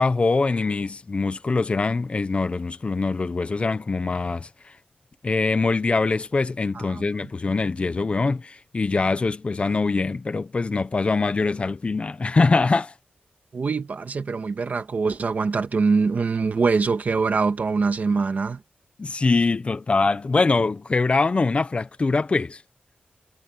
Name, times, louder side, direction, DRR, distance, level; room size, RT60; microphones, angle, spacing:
voice 1, 0.0-4.5 5.2-12.9 19.0-22.6, left 3 dB, 35° left, 1.0 m, -23 dB
voice 2, 6.8-7.1 13.5-18.6, right 4 dB, 50° right, 1.9 m, -23 dB
wide cardioid pair, 125°, 3 cm